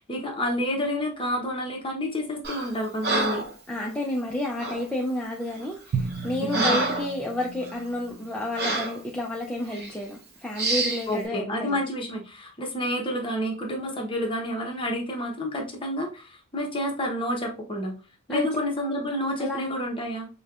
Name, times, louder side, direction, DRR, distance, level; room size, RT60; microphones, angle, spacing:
voice 1, 0.0-3.4 6.4-6.8 11.1-17.9 18.3-20.3, equal, 25° left, 0.8 m, -29 dB
Breathing, 2.4-2.7 3.0-3.5 4.6-4.9 5.5-5.7 6.1-7.2 7.6-7.8 8.6-9.0 9.7-9.9 10.6-11.1, right 2 dB, 50° right, 0.8 m, -27 dB
voice 2, 3.7-11.8 18.3-18.5 19.4-19.7, left 1 dB, 5° left, 0.4 m, -30 dB
Drum, 5.9-8.9, right 4 dB, 90° right, 0.4 m, -35 dB
5.0 x 2.2 x 2.4 m
head